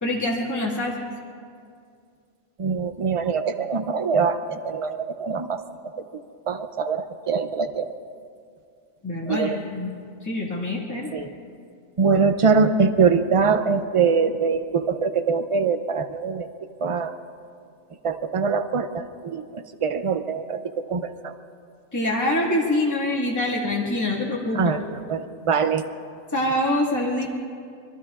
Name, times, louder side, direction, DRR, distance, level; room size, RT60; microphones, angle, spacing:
voice 1, 0.0-1.0 9.0-9.9 10.2-11.1 21.9-24.6 26.3-27.3, left 1 dB, 15° left, -4 dB, 1.9 m, -25 dB
voice 2, 2.6-5.9 6.5-7.9 9.3-9.6 11.1-11.3 12.0-16.5 16.8-17.1 18.0-21.3 24.5-24.8 25.1-25.8, right 5 dB, 40° right, 9 dB, 0.5 m, -23 dB
26.0 x 22.5 x 2.5 m, 2.3 s
omnidirectional pair, 1.4 m